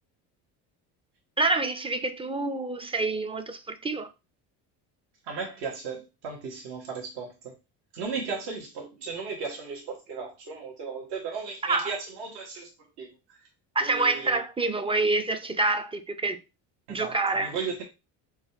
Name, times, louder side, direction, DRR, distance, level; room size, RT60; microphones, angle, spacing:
voice 1, 1.4-4.1 11.6-11.9 13.8-16.4 16.9-17.5, right 2 dB, 15° right, 0.4 m, -27 dB
voice 2, 5.2-7.5 7.9-12.7 13.0-13.1 13.8-14.4 16.9-17.8, right 5 dB, 70° right, 1.2 m, -35 dB
3.8 x 2.4 x 3.1 m
supercardioid pair, 90°, 41 cm